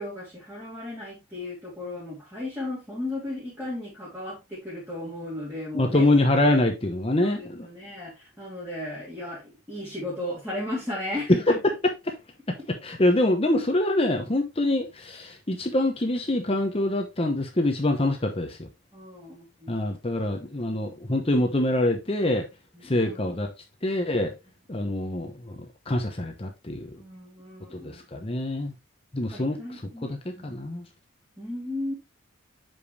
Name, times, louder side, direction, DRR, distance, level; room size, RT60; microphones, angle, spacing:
voice 1, 0.0-6.1 6.5-6.6 7.2-11.6 18.9-19.8 22.7-23.2 26.9-28.0 29.3-30.6 31.4-31.9, left 1 dB, 10° right, 2.7 m, -35 dB
voice 2, 5.7-7.7 11.5-11.6 12.1-12.2 12.8-18.7 19.7-22.5 22.8-23.5 23.8-24.3 24.7-25.6 25.9-26.9 27.7-28.7 29.1-29.6 30.0-30.8, left 1 dB, 25° left, 0.9 m, -25 dB
7.6 x 5.2 x 3.1 m
head